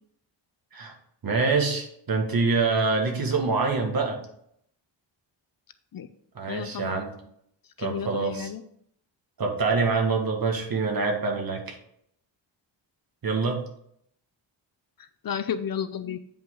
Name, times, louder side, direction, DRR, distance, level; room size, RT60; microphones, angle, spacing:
voice 1, 1.2-4.2 6.4-7.1 7.8-8.5 9.4-11.8 13.2-13.6, right 4 dB, 50° right, 1 dB, 1.8 m, -25 dB
voice 2, 6.5-7.0 7.8-8.6 15.0-16.2, left 8 dB, 50° left, 13 dB, 0.5 m, -32 dB
8.9 x 5.5 x 3.8 m, 0.70 s
wide cardioid pair, 110°, 44 cm